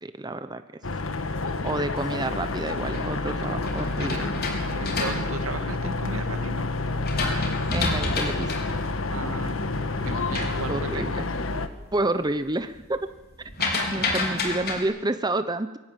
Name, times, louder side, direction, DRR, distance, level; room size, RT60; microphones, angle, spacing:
voice 1, 0.0-0.6 1.6-4.3 7.5-8.6 10.3-11.3 11.9-13.0 13.9-15.8, right 2 dB, 20° right, 10 dB, 0.9 m, -29 dB
sound 1, 0.8-11.7, left 3 dB, 70° left, 1.5 m, -29 dB
sound 2, 2.6-6.2 6.7-11.5 11.9-12.3 12.6-14.8, left 3 dB, 50° left, 4.4 m, -31 dB
voice 2, 4.0-6.7 9.1-9.6 10.0-11.1 13.6-14.4, right 3 dB, 85° right, 8 dB, 2.1 m, -35 dB
22.5 x 17.5 x 9.2 m, 1.1 s
head